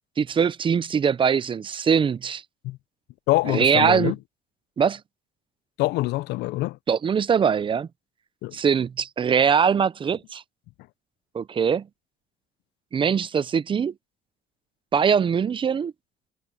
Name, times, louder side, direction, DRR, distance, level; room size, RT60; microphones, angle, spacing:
voice 1, 0.2-2.4 3.5-4.1 4.8-5.0 6.9-7.9 8.5-10.4 11.3-11.9 12.9-13.9 14.9-15.9, right 7 dB, 30° right, 0.5 m, -22 dB
voice 2, 3.3-4.2 5.8-6.8 8.4-8.6, left 19 dB, 85° left, 0.5 m, -25 dB
cardioid pair, 110°, 17 cm